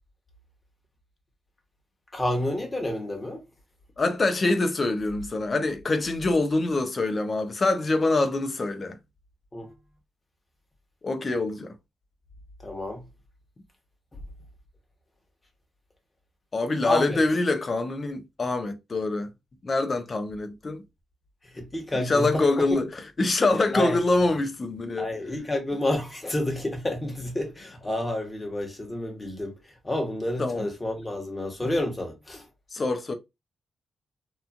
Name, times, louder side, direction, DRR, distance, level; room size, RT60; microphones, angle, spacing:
voice 1, 2.1-3.4 9.5-9.7 12.6-13.0 16.8-17.2 21.5-22.6 23.7-24.0 25.0-29.6 29.8-32.4, left 1 dB, 25° left, 1.3 m, -29 dB
voice 2, 4.0-9.0 11.0-11.7 16.5-19.3 19.6-20.8 21.9-25.1 30.4-30.7 32.7-33.1, left 2 dB, 40° left, 0.6 m, -25 dB
3.0 x 2.3 x 2.5 m
cardioid pair, 65°, 0 cm